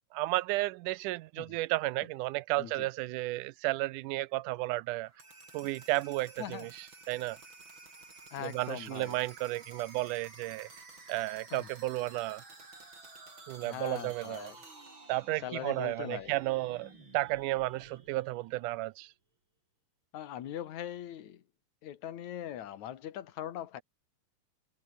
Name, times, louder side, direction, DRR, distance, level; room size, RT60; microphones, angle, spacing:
voice 1, 0.1-5.1 5.5-7.4 8.4-10.7 11.1-12.4 13.5-14.5 15.1-19.1, right 19 dB, 90° right, 2.2 m, -33 dB
voice 2, 2.6-2.9 6.4-6.7 8.3-9.2 11.5-11.7 13.6-14.6 15.4-16.4 20.1-21.4 21.8-23.8, left 11 dB, 70° left, 2.8 m, -41 dB
sound 1, 5.1-18.9, right 3 dB, 35° right, 6.3 m, -53 dB
omnidirectional pair, 3.5 m